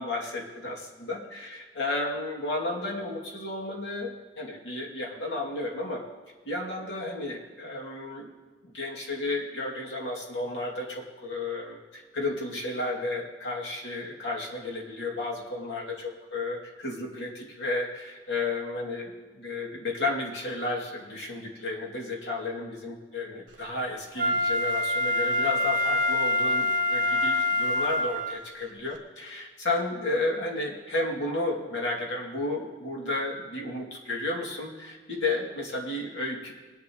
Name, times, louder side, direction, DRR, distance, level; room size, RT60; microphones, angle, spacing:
voice 1, 0.0-6.0 6.4-8.3 8.6-36.5, left 2 dB, 75° left, -2 dB, 2.7 m, -32 dB
Wind instrument woodwind instrument, 24.2-28.4 29.0-29.1, left 2 dB, 50° right, 1.4 m, -25 dB
20.0 x 11.0 x 3.1 m, 1.4 s
head